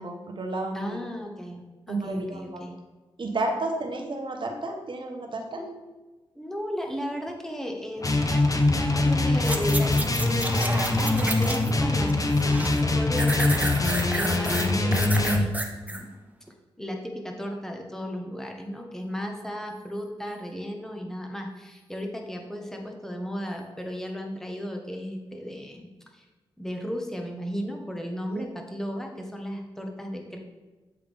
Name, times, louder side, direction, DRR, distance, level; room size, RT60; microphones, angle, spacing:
voice 1, 0.0-1.0 1.9-2.7 3.2-5.6 28.3-28.5, right 2 dB, 55° right, 3 dB, 1.1 m, -32 dB
voice 2, 0.7-2.7 5.5-5.8 6.3-13.8 14.1-15.5 15.9-16.1 16.8-25.9 26.1-26.2 26.6-30.4, equal, 5° left, 1 dB, 1.2 m, -35 dB
sound 1, 8.0-15.5, left 2 dB, 35° left, 0.8 m, -23 dB
sound 2, 9.4-11.8 12.1-12.8 13.2-16.0 16.5-16.6, right 1 dB, 15° right, 0.8 m, -31 dB
8.0 x 3.6 x 3.5 m, 1.2 s
cardioid pair, 45°, 10 cm